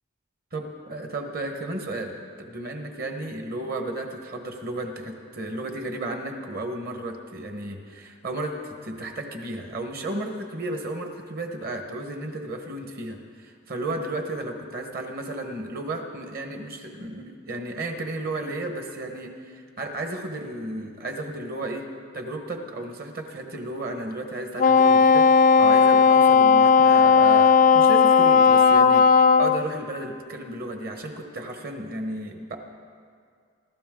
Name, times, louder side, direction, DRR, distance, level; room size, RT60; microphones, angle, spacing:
voice 1, 0.5-2.1 2.4-21.9 22.1-32.7, right 2 dB, 45° right, 4 dB, 1.4 m, -33 dB
Wind instrument woodwind instrument, 24.6-29.6, left 6 dB, 40° left, 0.3 m, -16 dB
24.5 x 13.0 x 3.8 m, 2.1 s
head